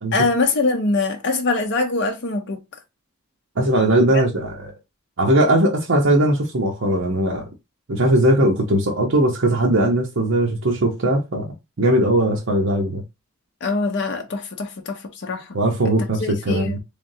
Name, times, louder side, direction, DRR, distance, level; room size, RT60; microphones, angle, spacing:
voice 1, 0.1-2.6 13.6-15.6 16.2-16.8, left 3 dB, 60° left, 0.6 m, -23 dB
voice 2, 3.6-4.7 5.2-7.4 7.9-11.5 11.8-13.0 15.5-16.8, right 1 dB, 65° right, 0.8 m, -19 dB
3.6 x 3.5 x 2.6 m
head